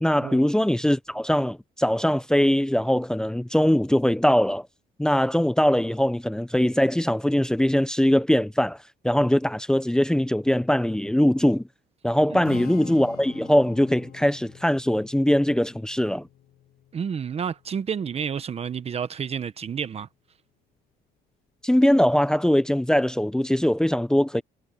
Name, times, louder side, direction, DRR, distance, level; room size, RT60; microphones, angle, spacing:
voice 1, 0.0-4.7 5.0-8.8 9.0-11.6 12.0-16.3 21.6-24.4, equal, 5° left, 0.9 m, -21 dB
Strum, 12.4-18.7, left 11 dB, 65° left, 2.1 m, -44 dB
voice 2, 16.9-20.1, right 7 dB, 35° right, 1.1 m, -30 dB
cardioid pair, 110°, 17 cm